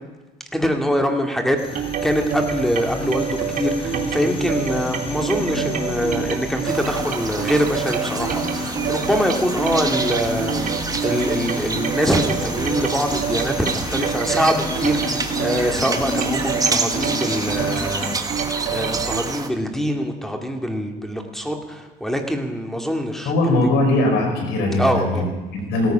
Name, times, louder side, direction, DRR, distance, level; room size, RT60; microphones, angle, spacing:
voice 1, 0.5-23.7 24.8-25.3, equal, ahead, 4 dB, 2.3 m, -24 dB
sound 1, 1.6-18.2, left 3 dB, 35° left, 2.4 m, -32 dB
sound 2, 1.7-19.2, right 7 dB, 55° right, 1.8 m, -28 dB
sound 3, 6.7-19.5, right 4 dB, 20° right, 1.4 m, -28 dB
voice 2, 23.2-25.9, left 2 dB, 85° left, 2 dB, 4.9 m, -20 dB
17.0 x 14.0 x 5.8 m, 1.2 s
cardioid pair, 110°, 17 cm